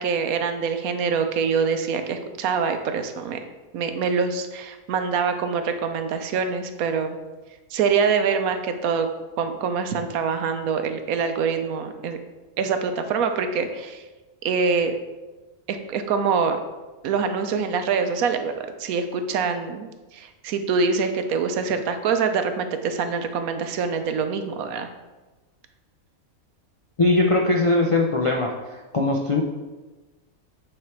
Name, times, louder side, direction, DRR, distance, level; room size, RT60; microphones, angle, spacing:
voice 1, 0.0-3.4 3.7-7.2 7.7-9.1 9.4-12.2 12.6-14.0 14.4-14.9 15.7-16.6 17.0-18.5 18.8-24.9, right 5 dB, 85° right, 7 dB, 1.1 m, -25 dB
voice 2, 27.0-28.5 28.9-29.4, left 2 dB, 50° left, 0 dB, 0.3 m, -20 dB
8.7 x 3.3 x 4.5 m, 1.2 s
omnidirectional pair, 1.5 m